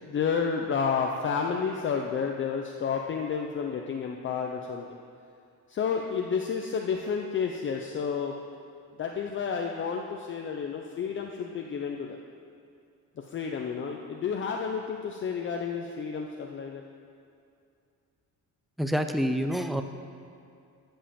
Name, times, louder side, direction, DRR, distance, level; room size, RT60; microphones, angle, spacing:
voice 1, 0.0-4.9 5.7-8.3 9.0-12.2 13.2-16.8, left 6 dB, 35° left, 2 dB, 0.6 m, -31 dB
voice 2, 18.8-19.8, equal, ahead, 7 dB, 0.5 m, -27 dB
14.5 x 5.5 x 7.0 m, 2.4 s
cardioid pair, 145°, 33 cm